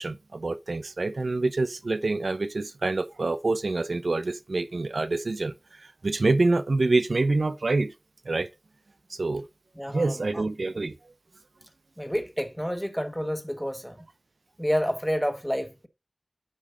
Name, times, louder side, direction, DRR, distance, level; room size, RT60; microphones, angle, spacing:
voice 1, 0.0-5.5 5.8-7.9 8.3-8.5 9.1-9.5 9.9-10.9, right 3 dB, 80° right, 0.5 m, -26 dB
voice 2, 9.8-10.4 12.0-14.0 14.6-15.9, equal, 5° left, 1.4 m, -29 dB
8.6 x 5.2 x 3.9 m
wide cardioid pair, 50°, 0 cm